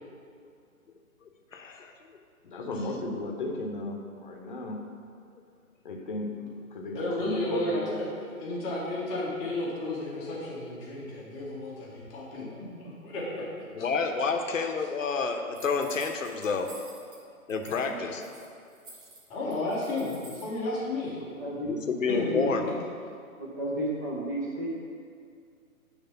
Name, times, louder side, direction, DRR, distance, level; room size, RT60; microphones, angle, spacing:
voice 1, 1.5-1.9 13.7-16.7 17.5-18.2 21.6-22.6, left 4 dB, 60° left, 5 dB, 0.9 m, -29 dB
voice 2, 2.4-4.8 5.8-8.1 17.7-18.0, left 2 dB, 35° left, 2 dB, 0.9 m, -35 dB
voice 3, 6.9-8.0 8.4-13.4 19.3-21.2 22.1-22.2, left 2 dB, 10° left, -7 dB, 0.9 m, -33 dB
sound 1, 15.5-17.2 17.5-17.9 18.1-20.5, right 2 dB, 35° right, 1.9 m, -49 dB
voice 4, 21.1-22.4 23.4-24.7, right 1 dB, 15° right, -5 dB, 0.6 m, -33 dB
9.6 x 3.3 x 5.7 m, 2.3 s
figure-of-eight pair, 140°, 43 cm